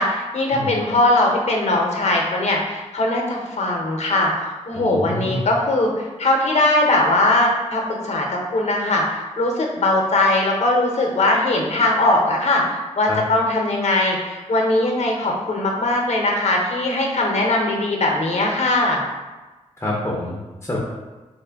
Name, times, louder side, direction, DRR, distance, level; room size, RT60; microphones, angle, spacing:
voice 1, 0.0-19.0, left 2 dB, 60° left, 0 dB, 0.7 m, -20 dB
voice 2, 4.7-5.4 13.1-13.2 19.8-20.8, left 1 dB, 20° left, -4 dB, 0.6 m, -27 dB
4.2 x 2.2 x 3.4 m, 1.2 s
wide cardioid pair, 105°, 13 cm